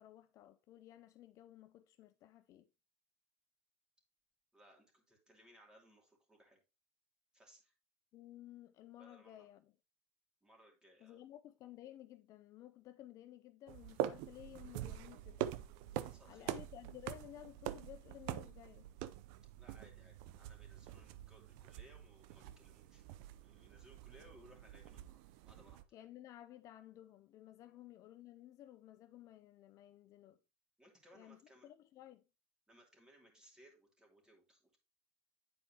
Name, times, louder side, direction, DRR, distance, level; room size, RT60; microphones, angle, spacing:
voice 1, 0.0-2.7 8.1-9.7 11.0-15.5 16.2-18.9 25.9-30.4 31.1-32.3, left 13 dB, 50° left, 0.4 m, -55 dB
voice 2, 4.5-6.6 7.3-7.7 9.0-9.5 10.4-11.2 16.0-16.5 19.6-23.0 23.4-25.2 25.5-25.8 27.6-27.8 30.8-31.7 32.7-34.8, equal, 10° right, 2.6 m, -64 dB
sound 1, 13.7-25.8, right 12 dB, 70° right, 0.5 m, -45 dB
9.5 x 4.5 x 2.8 m
supercardioid pair, 115°, 7 cm